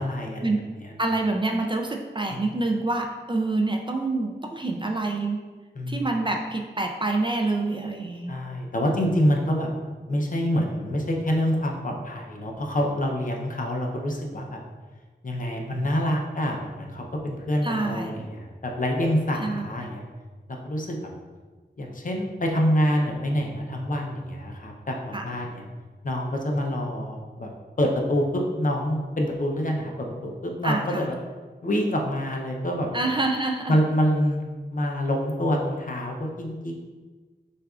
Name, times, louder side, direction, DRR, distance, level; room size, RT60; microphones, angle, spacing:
voice 1, 0.0-0.5 0.8-0.9 2.3-2.4 5.8-6.0 8.3-9.7 10.1-14.6 15.2-20.0 20.6-20.9 21.8-25.6 26.0-27.5 27.8-31.2 31.6-32.9 33.7-36.7, equal, 50° left, 0 dB, 0.6 m, -26 dB
voice 2, 1.0-5.4 5.9-8.3 17.6-18.2 19.4-19.7 25.1-25.2 30.6-31.1 32.9-33.8, right 2 dB, 25° right, 2 dB, 0.4 m, -27 dB
6.3 x 2.4 x 2.4 m, 1.4 s
wide cardioid pair, 80°, 18 cm